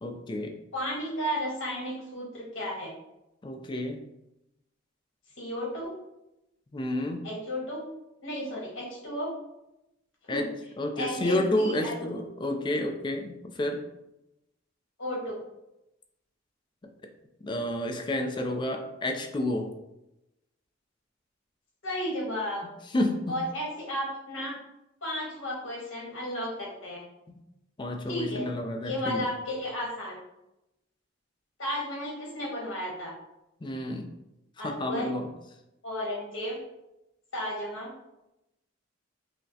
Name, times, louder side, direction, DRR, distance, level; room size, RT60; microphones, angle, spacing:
voice 1, 0.0-0.6 3.4-4.0 6.7-7.3 10.3-10.5 10.8-13.8 17.4-19.7 22.9-23.4 27.8-29.2 33.6-34.1 34.6-35.3, left 1 dB, 25° left, 4 dB, 0.4 m, -30 dB
voice 2, 0.7-2.9 5.4-5.9 7.2-7.8 8.2-9.3 10.3-10.5 11.0-12.0 15.0-15.4 21.8-22.7 23.3-24.5 25.0-27.0 28.1-28.5 28.8-30.1 31.6-33.1 34.6-35.1 35.8-36.6 37.3-37.9, equal, 75° left, -3 dB, 1.4 m, -33 dB
5.6 x 2.0 x 2.7 m, 0.91 s
head